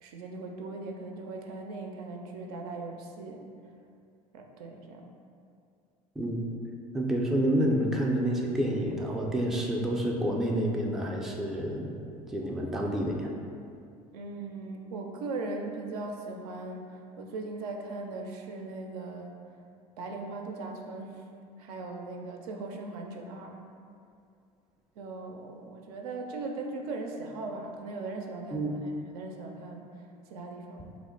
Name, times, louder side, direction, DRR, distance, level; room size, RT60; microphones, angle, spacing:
voice 1, 0.0-3.5 4.3-5.1 14.1-19.3 20.0-21.2 21.6-23.6 25.0-31.0, right 3 dB, 70° right, 2 dB, 0.4 m, -39 dB
voice 2, 6.9-11.9 12.3-13.3 28.5-28.7, right 1 dB, ahead, -2 dB, 0.4 m, -28 dB
2.8 x 2.1 x 3.8 m, 2.4 s
hypercardioid pair, 70°, 20 cm